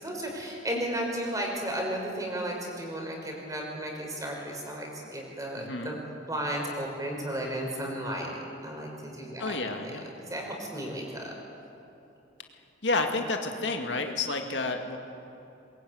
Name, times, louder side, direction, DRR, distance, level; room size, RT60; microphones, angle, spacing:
voice 1, 0.0-6.0 6.3-8.3 8.6-9.9 10.2-11.3, right 1 dB, 20° right, 0 dB, 5.7 m, -34 dB
voice 2, 5.6-6.0 9.4-10.1 12.8-15.0, left 3 dB, 70° left, 4 dB, 2.1 m, -30 dB
22.0 x 22.0 x 9.7 m, 3.0 s
head